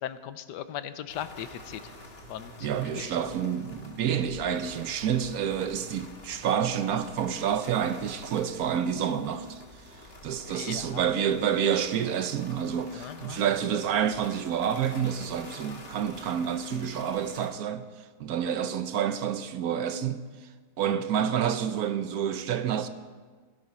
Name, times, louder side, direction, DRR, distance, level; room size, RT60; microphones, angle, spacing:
voice 1, 0.0-1.9 2.3-2.7 2.9-3.2 10.5-11.0 12.9-13.4 20.8-21.0, left 10 dB, 85° left, 1.3 m, -38 dB
sound 1, 1.1-17.5, left 1 dB, 40° left, 1.7 m, -48 dB
voice 2, 2.6-9.6 9.9-17.9 18.2-20.2 20.8-22.9, right 8 dB, 70° right, 1.1 m, -28 dB
16.0 x 10.5 x 4.2 m
omnidirectional pair, 1.8 m